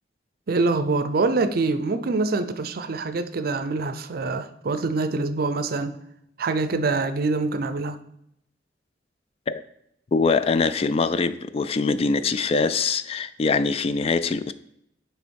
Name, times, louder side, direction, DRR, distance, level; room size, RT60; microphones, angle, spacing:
voice 1, 0.5-5.9 6.4-8.0, right 3 dB, 60° right, 0.5 m, -25 dB
voice 2, 10.1-14.5, left 4 dB, 35° left, 0.3 m, -23 dB
9.5 x 3.4 x 4.6 m
head